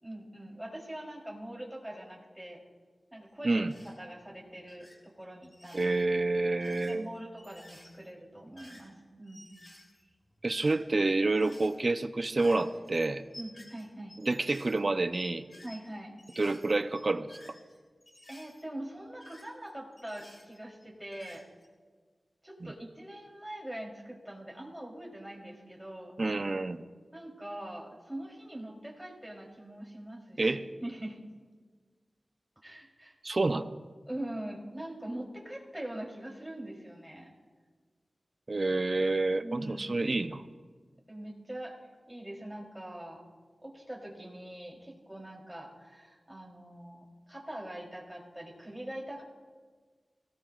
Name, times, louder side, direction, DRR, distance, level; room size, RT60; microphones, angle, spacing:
voice 1, 0.0-2.6 3.1-5.9 6.9-9.5 13.4-14.2 15.6-16.1 18.3-21.4 22.4-26.1 27.1-31.3 32.6-33.2 34.1-37.3 39.4-39.9 41.1-41.7 42.1-43.2 43.6-49.2, right 1 dB, 10° right, -2 dB, 3.5 m, -43 dB
sound 1, 3.7-4.0 4.6-5.0 5.4-6.1 6.5-9.0 9.3-11.0 11.3-11.9 12.3-15.9 16.2-18.6 19.2-20.8 21.1-21.7, left 1 dB, 35° left, 3.6 m, -54 dB
voice 2, 5.7-7.1 10.4-13.2 14.2-15.4 16.4-17.3 26.2-26.8 30.4-30.6 33.2-33.7 38.5-40.4, right 2 dB, 50° right, 9 dB, 0.7 m, -28 dB
23.0 x 17.5 x 2.5 m, 1.5 s
wide cardioid pair, 70°, 0 cm